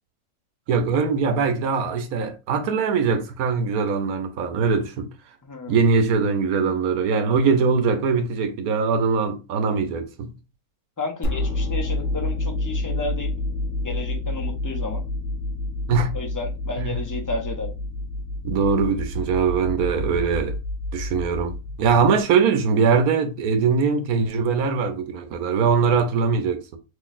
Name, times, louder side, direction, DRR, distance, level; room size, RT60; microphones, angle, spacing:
voice 1, 0.7-5.1 5.7-10.3 15.9-16.1 16.8-17.0 18.4-20.5 20.9-26.8, right 5 dB, 85° right, 1.1 m, -22 dB
voice 2, 5.4-5.8 11.0-13.3 13.8-15.0 16.1-17.7, left 2 dB, 25° left, 0.4 m, -32 dB
sound 1, 11.2-22.2, left 2 dB, 50° left, 0.9 m, -29 dB
3.9 x 3.0 x 2.4 m
omnidirectional pair, 1.5 m